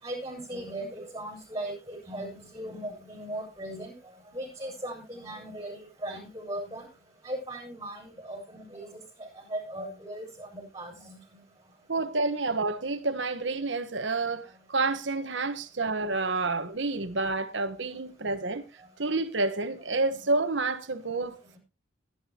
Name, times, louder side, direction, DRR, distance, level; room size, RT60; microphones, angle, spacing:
voice 1, 0.0-3.9 4.3-6.9 7.2-11.4 20.1-20.2, right 1 dB, 20° right, 7.4 m, -38 dB
voice 2, 11.9-18.6 19.0-21.6, right 3 dB, 70° right, 1.3 m, -29 dB
19.5 x 9.9 x 3.0 m
head